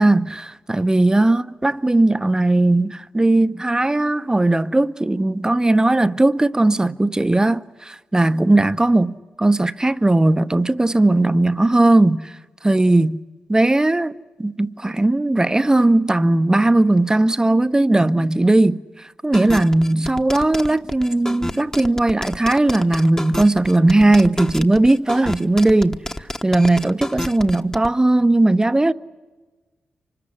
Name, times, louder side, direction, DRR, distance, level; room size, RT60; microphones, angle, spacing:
voice 1, 0.0-12.3 12.6-13.2 13.5-14.1 14.4-26.0 26.4-28.9, right 2 dB, 20° right, 0.8 m, -17 dB
sound 1, 19.3-27.9, left 1 dB, 15° left, 1.2 m, -29 dB
25.0 x 20.5 x 9.8 m
supercardioid pair, 50°, 4 cm